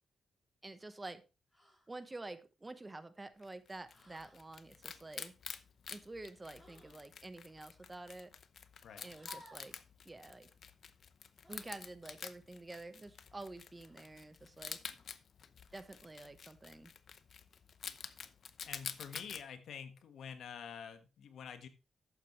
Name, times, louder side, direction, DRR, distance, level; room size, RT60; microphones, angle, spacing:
voice 1, 0.6-1.2 1.9-5.3 5.9-8.3 9.0-9.7 10.0-10.5 11.5-14.8 15.7-16.9, right 2 dB, 20° right, 11 dB, 1.0 m, -49 dB
sound 1, 1.5-1.9 3.9-4.4 6.5-7.0 8.8-9.8 11.4-11.6 13.7-14.2 15.6-16.1, left 1 dB, 5° left, 4.1 m, -60 dB
Wild animals, 3.4-19.4, left 7 dB, 55° left, 0.7 m, -49 dB
voice 2, 18.7-21.7, left 7 dB, 80° left, 9 dB, 1.4 m, -48 dB
11.5 x 8.4 x 3.1 m, 0.30 s
cardioid pair, 120°, 0 cm